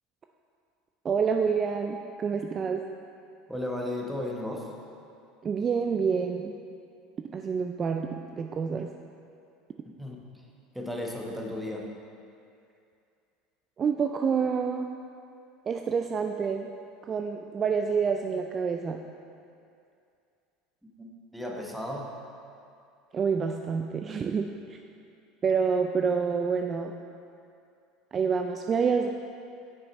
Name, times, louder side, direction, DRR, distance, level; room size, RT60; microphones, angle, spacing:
voice 1, 1.0-2.8 5.4-6.5 7.3-8.9 13.8-14.9 15.7-16.7 17.1-19.0 23.1-24.8 25.4-26.9 28.1-29.1, right 6 dB, 35° right, 4 dB, 0.3 m, -27 dB
voice 2, 3.5-4.7 10.0-10.2 10.7-11.9 21.0-22.1, left 1 dB, 5° right, -1 dB, 1.0 m, -34 dB
6.1 x 5.8 x 4.2 m, 2.5 s
hypercardioid pair, 85°, 0 cm